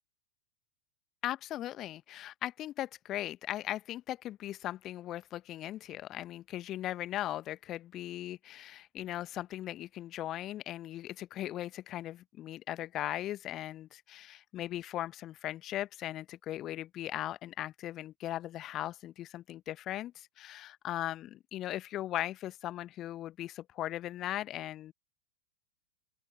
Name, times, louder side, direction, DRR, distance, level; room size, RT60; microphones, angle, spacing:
voice 1, 1.2-24.9, left 13 dB, 35° left, 1.2 m, -38 dB
open air
figure-of-eight pair, 90°, 0 cm